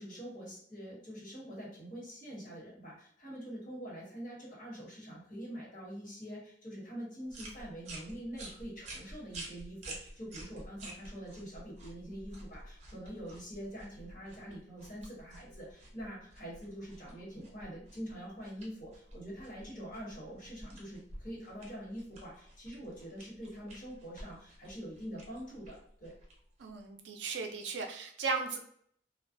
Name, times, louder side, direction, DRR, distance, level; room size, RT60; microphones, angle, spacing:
voice 1, 0.0-26.1, equal, 50° left, -6 dB, 1.3 m, -45 dB
sound 1, 7.3-26.9, right 1 dB, 40° right, 0.6 m, -50 dB
voice 2, 26.6-28.6, right 4 dB, 80° right, 4 dB, 0.4 m, -36 dB
2.3 x 2.2 x 2.5 m, 0.65 s
head